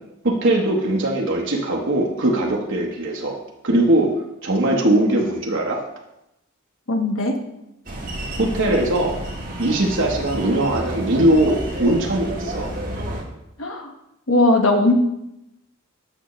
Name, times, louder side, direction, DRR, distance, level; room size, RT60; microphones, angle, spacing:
voice 1, 0.2-3.4 3.6-4.1 4.4-5.8 8.4-9.2 9.6-12.7, right 1 dB, 60° right, -1 dB, 0.9 m, -20 dB
voice 2, 6.9-7.3 13.6-13.9 14.3-14.9, left 2 dB, 70° left, 3 dB, 1.1 m, -18 dB
sound 1, 7.8-13.2, right 1 dB, 40° right, 1.4 m, -30 dB
8.8 x 6.1 x 3.0 m, 0.86 s
head